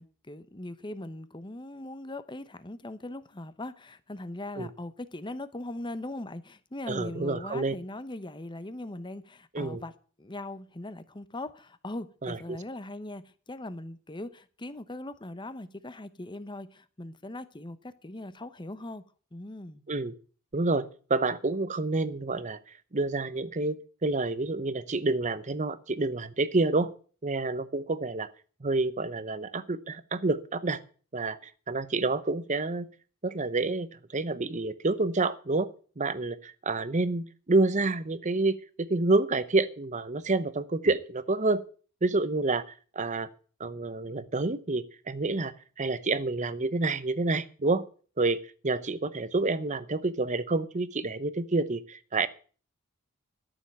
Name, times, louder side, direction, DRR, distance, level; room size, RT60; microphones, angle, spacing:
voice 1, 0.0-9.9 10.2-19.0 19.3-19.8, left 1 dB, 20° left, 0.9 m, -40 dB
voice 2, 6.9-7.7 9.5-9.8 12.2-12.6 19.9-20.1 20.5-22.6 22.9-26.9 27.2-28.3 28.6-30.8 31.1-32.9 33.2-35.7 36.0-41.6 42.0-42.6 43.0-43.3 43.6-45.5 45.8-47.8 48.2-52.3, right 3 dB, 35° right, 0.8 m, -28 dB
13.0 x 6.9 x 8.6 m
head